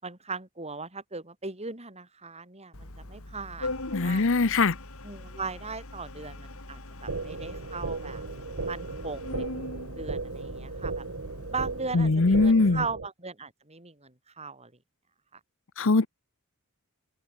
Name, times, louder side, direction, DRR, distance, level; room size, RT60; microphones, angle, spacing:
voice 1, 0.0-4.3 5.0-8.2 8.7-9.5 10.0-11.1 11.5-14.7 15.3-15.4, right 4 dB, 30° right, 7.4 m, -38 dB
Organ, 2.7-11.8, left 2 dB, 80° left, 4.1 m, -41 dB
voice 2, 3.9-4.8 11.9-12.8 15.8-16.1, left 3 dB, 65° left, 0.9 m, -21 dB
sound 1, 7.1-13.1, right 3 dB, 65° right, 1.2 m, -36 dB
open air
head